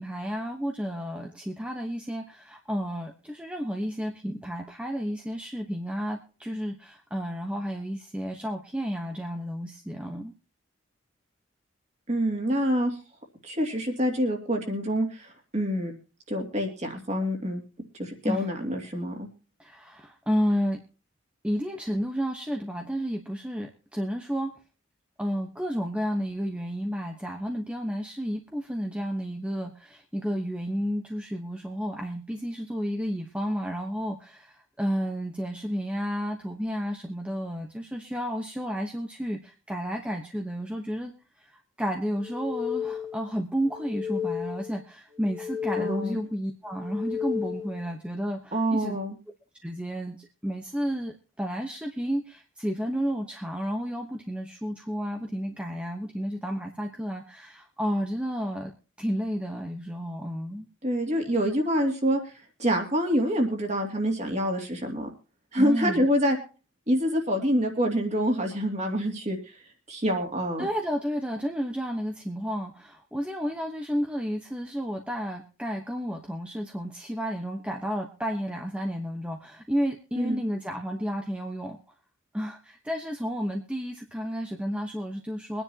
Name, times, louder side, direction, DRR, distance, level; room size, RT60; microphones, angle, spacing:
voice 1, 0.0-10.3 18.2-18.5 19.6-20.8 21.4-24.5 25.2-41.1 41.4-49.0 49.6-58.7 59.0-60.7 65.6-66.1 70.6-81.8 82.3-85.6, equal, 5° right, 2 dB, 1.1 m, -31 dB
voice 2, 12.1-13.0 13.4-15.9 16.3-17.6 18.0-19.3 45.8-46.2 48.5-49.1 60.8-62.3 62.6-65.1 65.5-66.4 66.9-69.4 69.9-70.7 80.2-80.4, equal, 35° right, 3 dB, 2.6 m, -26 dB
sound 1, 42.1-43.3 43.6-44.8 45.1-46.3 46.7-47.8, left 8 dB, 90° right, 6.5 m, -33 dB
23.5 x 10.0 x 2.9 m, 0.34 s
head